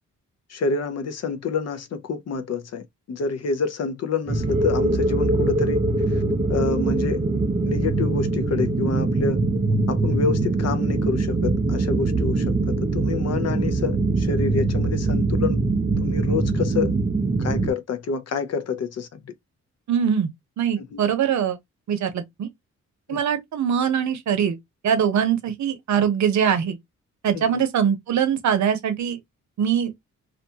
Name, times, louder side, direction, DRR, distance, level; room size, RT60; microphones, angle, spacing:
voice 1, 0.5-5.8 6.1-6.2 6.5-7.2 7.6-9.4 9.9-15.6 16.0-16.9 17.4-19.2 20.8-21.0 23.1-23.2 27.3-27.6, left 4 dB, 55° left, 0.6 m, -28 dB
sound 1, 4.3-17.7, right 2 dB, 25° right, 0.5 m, -22 dB
voice 2, 19.9-20.3 20.6-21.6 21.9-22.5 23.1-24.6 24.8-26.8 27.2-29.2 29.6-29.9, right 8 dB, 70° right, 0.7 m, -22 dB
2.5 x 2.2 x 2.7 m
cardioid pair, 90°, 30 cm